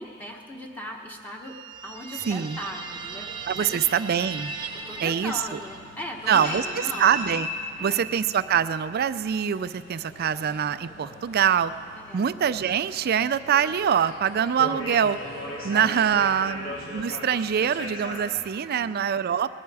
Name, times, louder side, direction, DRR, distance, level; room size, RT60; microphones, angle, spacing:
voice 1, 0.0-1.5 1.8-3.8 4.7-7.1 7.8-8.1 12.0-12.3 18.7-19.0, equal, 10° left, 0 dB, 1.0 m, -38 dB
sound 1, 1.4-6.2, right 4 dB, 25° right, 0.8 m, -38 dB
sound 2, 2.2-18.4, left 1 dB, 80° left, 3.3 m, -39 dB
voice 2, 2.3-2.6 3.5-4.5 5.0-5.6 6.3-6.7 7.0-7.5 7.8-11.7 12.1-15.2 15.6-19.6, right 8 dB, 50° right, 14 dB, 0.4 m, -24 dB
20.0 x 11.5 x 4.7 m, 2.4 s
head